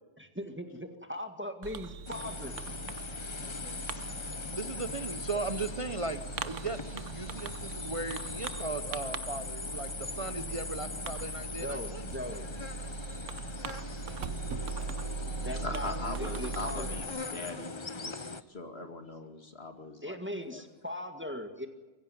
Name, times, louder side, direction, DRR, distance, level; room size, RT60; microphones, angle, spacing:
voice 1, 0.2-2.6 11.6-12.4 15.4-16.9 20.0-21.7, left 1 dB, 10° right, 7 dB, 1.8 m, -39 dB
Fireworks, 1.6-17.0, right 5 dB, 90° right, 1.2 m, -40 dB
sound 1, 2.1-18.4, left 3 dB, 25° left, 0.8 m, -40 dB
voice 2, 4.5-12.0, right 3 dB, 30° right, 10 dB, 0.8 m, -37 dB
voice 3, 15.5-20.2 20.5-20.6, left 3 dB, 55° left, 6 dB, 2.7 m, -41 dB
23.5 x 16.0 x 9.6 m, 1.3 s
omnidirectional pair, 1.2 m